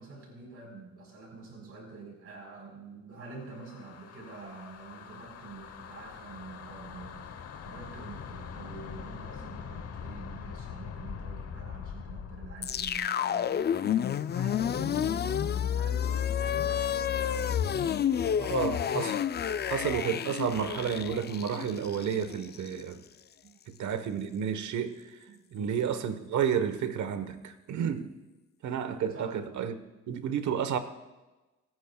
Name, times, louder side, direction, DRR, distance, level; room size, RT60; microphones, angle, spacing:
voice 1, 0.0-7.3 7.6-17.7 23.4-23.7 25.3-25.8 29.1-29.4, right 3 dB, 50° right, 4.3 m, -47 dB
sound 1, 3.3-13.0, left 7 dB, 55° left, 1.0 m, -43 dB
sound 2, 12.6-22.8, left 9 dB, 35° left, 0.4 m, -30 dB
voice 2, 18.4-19.2 19.7-23.0 23.7-25.2 25.5-28.1 28.6-29.8 30.1-30.8, right 8 dB, 70° right, 1.2 m, -31 dB
26.5 x 9.4 x 2.3 m
cardioid pair, 90°, 30 cm